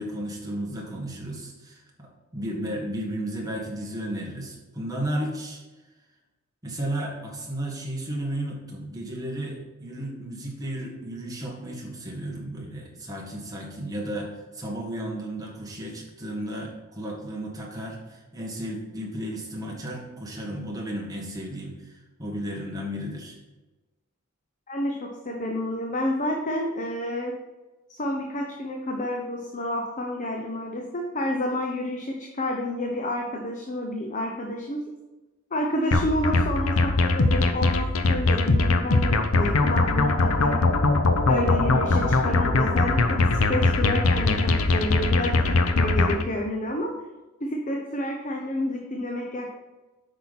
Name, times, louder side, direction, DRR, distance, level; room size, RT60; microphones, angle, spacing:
voice 1, 0.0-5.6 6.6-23.4, right 1 dB, 15° right, -2 dB, 1.7 m, -34 dB
voice 2, 24.7-27.3 27.9-34.8 35.5-40.7 41.2-46.9 47.4-49.5, left 1 dB, 35° left, 1 dB, 0.8 m, -29 dB
sound 1, 35.9-46.2, left 3 dB, 75° left, 0.7 m, -21 dB
8.4 x 5.7 x 4.2 m, 1.2 s
head